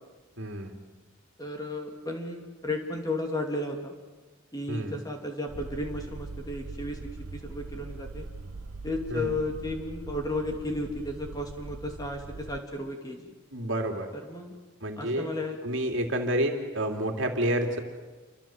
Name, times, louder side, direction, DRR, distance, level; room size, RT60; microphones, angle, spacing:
voice 1, 0.4-0.7 4.7-5.0 9.1-9.4 13.5-14.1 14.8-15.3 15.6-17.8, right 1 dB, 55° right, 3 dB, 3.0 m, -29 dB
voice 2, 1.4-3.9 4.5-8.3 8.8-13.3 14.2-14.6 15.0-15.6, left 2 dB, 15° left, 2 dB, 2.9 m, -34 dB
sound 1, 5.5-12.6, right 3 dB, 75° right, 0.9 m, -41 dB
28.5 x 25.5 x 7.7 m, 1.3 s
head